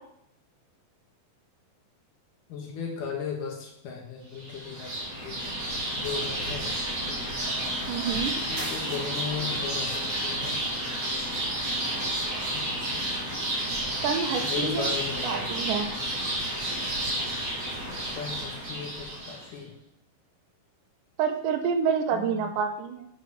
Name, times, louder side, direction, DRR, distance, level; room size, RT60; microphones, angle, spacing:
voice 1, 2.5-4.9 5.2-5.4 6.0-6.7 8.5-10.6 12.5-13.0 14.4-15.5 18.2-19.7 22.1-22.5, left 6 dB, 70° left, 0 dB, 3.2 m, -36 dB
sound 1, 4.4-19.5, right 1 dB, 35° right, 3.8 m, -31 dB
voice 2, 7.9-8.3 14.0-14.9 15.2-15.9 21.2-23.1, right 6 dB, 75° right, 4 dB, 2.7 m, -28 dB
9.7 x 5.3 x 6.0 m, 0.77 s
omnidirectional pair, 4.0 m